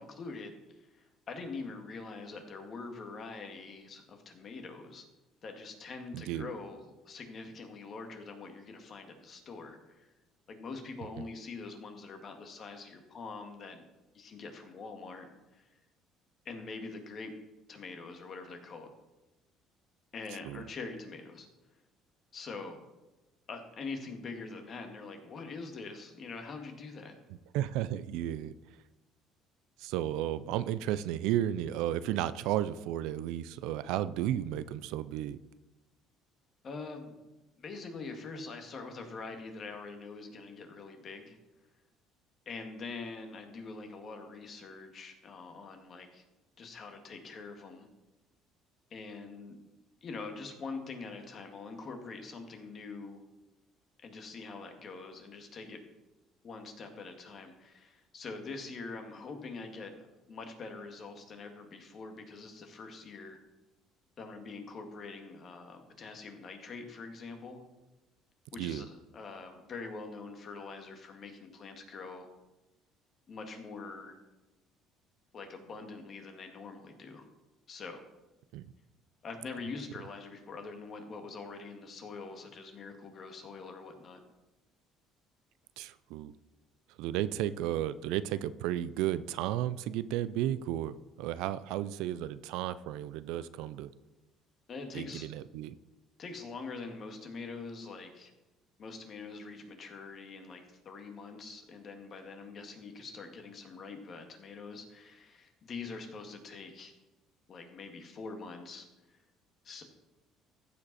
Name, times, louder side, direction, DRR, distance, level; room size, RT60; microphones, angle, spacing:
voice 1, 0.0-5.1 5.4-10.1 10.5-13.8 14.1-15.8 16.5-17.3 17.7-18.9 20.1-21.5 22.3-22.8 23.5-27.1 36.6-37.2 37.6-41.4 42.5-46.2 46.6-47.9 48.9-49.6 50.0-53.2 54.0-55.9 56.4-63.4 64.2-67.6 68.5-72.3 73.3-74.2 75.3-77.3 77.7-78.0 79.2-84.2 94.7-95.3 96.2-98.3 98.8-106.9 107.5-109.2 109.6-109.8, left 4 dB, 45° left, 4 dB, 1.8 m, -44 dB
voice 2, 6.1-6.5 20.5-20.6 27.5-28.5 29.8-35.4 68.6-68.9 78.5-78.6 85.8-86.3 87.0-93.9 94.9-95.7, right 12 dB, 80° right, 16 dB, 0.4 m, -33 dB
15.0 x 5.2 x 4.2 m, 1.0 s
supercardioid pair, 95°, 0 cm